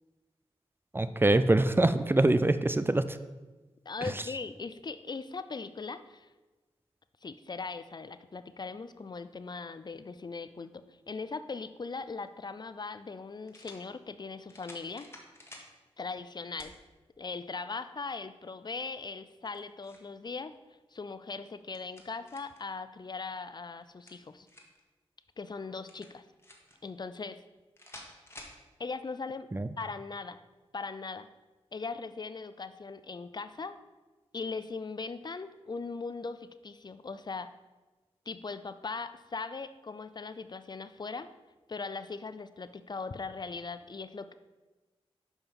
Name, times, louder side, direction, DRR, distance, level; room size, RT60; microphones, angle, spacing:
voice 1, 0.9-3.2 29.5-29.7, right 2 dB, 20° right, 12 dB, 0.4 m, -24 dB
voice 2, 3.9-6.3 7.2-15.1 16.0-16.7 17.2-20.5 20.9-24.5 25.4-26.2 26.8-27.4 28.8-29.5 29.8-30.4 30.7-31.3 31.7-33.8 34.3-37.5 38.3-41.3 41.7-44.3, left 4 dB, 40° left, 12 dB, 0.4 m, -39 dB
sound 1, 12.3-12.4 13.5-13.8 14.5-15.7 16.6-16.8 17.3-17.4 19.3-20.1 21.4-22.6 23.8-24.8 25.9-26.8 27.8-28.6, left 1 dB, 25° left, 1.5 m, -51 dB
5.9 x 5.4 x 5.3 m, 1.2 s
cardioid pair, 50°, 11 cm